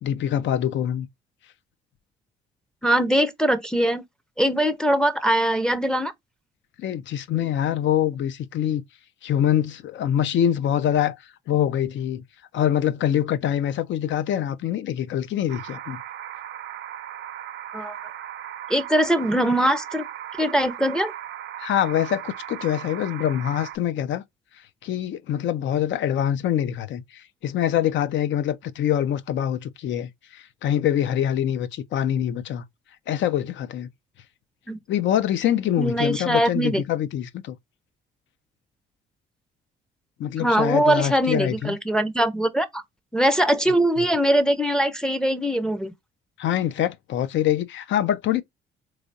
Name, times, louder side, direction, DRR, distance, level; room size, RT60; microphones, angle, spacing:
voice 1, 0.0-1.1 6.8-8.8 9.2-11.2 11.5-12.2 12.5-16.0 21.6-24.2 24.8-32.6 33.1-33.9 34.9-37.6 40.2-41.8 44.0-44.1 46.4-48.4, left 10 dB, 70° left, 0.6 m, -24 dB
voice 2, 2.8-4.0 4.4-6.1 17.7-17.9 18.7-20.0 20.4-21.1 34.7-34.8 35.8-36.8 40.4-42.8 43.1-45.9, right 1 dB, 5° left, 0.5 m, -22 dB
sound 1, 15.5-23.8, right 11 dB, 70° right, 0.6 m, -37 dB
3.7 x 3.1 x 2.6 m
cardioid pair, 90°, 20 cm